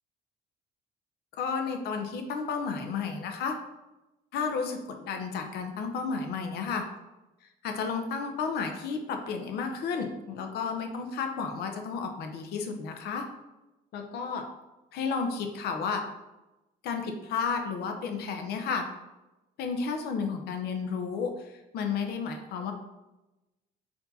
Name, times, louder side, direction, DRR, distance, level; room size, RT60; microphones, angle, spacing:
voice 1, 1.4-3.6 4.3-6.9 7.6-13.3 13.9-14.4 14.9-16.0 16.8-18.8 19.6-22.7, left 5 dB, 75° left, 5 dB, 0.7 m, -32 dB
4.4 x 2.8 x 4.0 m, 1.0 s
cardioid pair, 110°, 17 cm